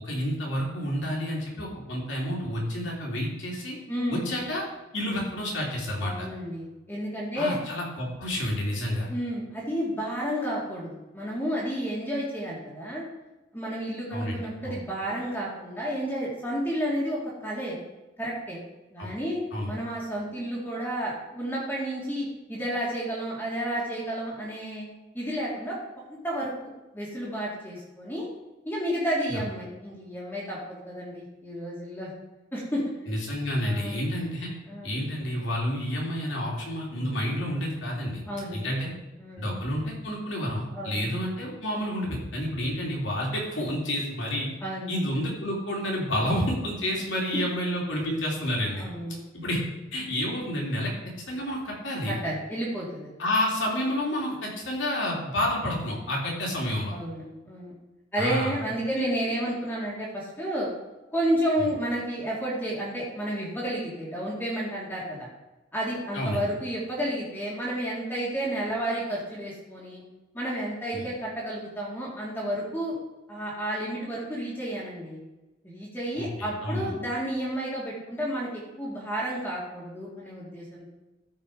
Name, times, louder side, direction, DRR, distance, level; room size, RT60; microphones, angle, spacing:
voice 1, 0.0-3.8 4.1-4.6 4.9-6.3 7.4-9.1 14.1-14.4 14.6-14.8 19.0-19.1 19.5-19.7 29.3-29.4 33.1-34.5 34.8-38.2 38.5-38.9 39.4-44.5 44.9-48.9 49.3-49.6 49.9-50.9 51.3-52.2 53.2-56.9 58.2-58.5 66.1-66.4 70.9-71.1 76.2-76.9, equal, 75° left, -3 dB, 3.2 m, -29 dB
voice 2, 3.9-4.3 6.0-7.6 9.1-13.0 13.5-17.8 18.2-18.6 18.9-24.9 25.1-28.3 28.7-32.1 32.5-32.8 33.6-34.0 34.7-34.9 38.3-38.6 39.2-39.5 40.7-41.0 44.6-44.9 48.8-49.2 52.1-53.1 56.9-57.7 58.1-60.7 61.1-65.3 65.7-70.0 70.3-73.0 73.3-75.2 75.6-80.9, equal, 10° left, -6 dB, 2.2 m, -31 dB
14.0 x 4.9 x 5.0 m, 1.1 s
head